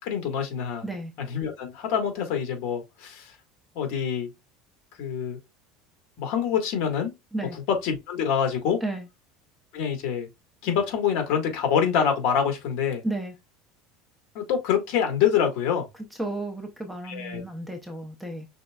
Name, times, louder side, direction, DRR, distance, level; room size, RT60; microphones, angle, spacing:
voice 1, 0.0-0.8 1.2-3.3 3.7-4.3 5.0-5.4 6.2-7.1 7.7-8.8 9.7-10.3 10.6-13.0 14.3-15.9 17.0-17.4, left 8 dB, 55° left, 1.6 m, -26 dB
voice 2, 13.0-13.3 16.2-18.5, right 2 dB, 5° right, 0.7 m, -32 dB
5.3 x 3.6 x 2.3 m
cardioid pair, 165°, 0 cm